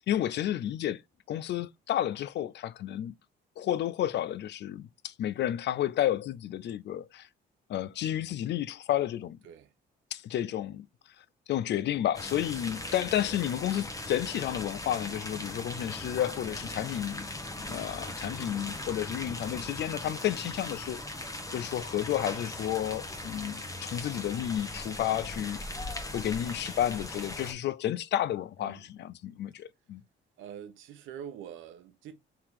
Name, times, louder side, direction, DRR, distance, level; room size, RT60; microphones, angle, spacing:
voice 1, 0.1-1.0 1.3-3.1 3.6-7.3 7.7-9.4 10.1-10.8 11.5-17.3 17.6-21.0 21.5-25.6 26.1-30.0, left 11 dB, 60° left, 0.4 m, -31 dB
sound 1, 12.1-27.5, left 2 dB, 15° left, 0.9 m, -39 dB
voice 2, 30.4-32.1, right 9 dB, 85° right, 0.8 m, -45 dB
3.7 x 2.9 x 4.7 m
cardioid pair, 90°, 20 cm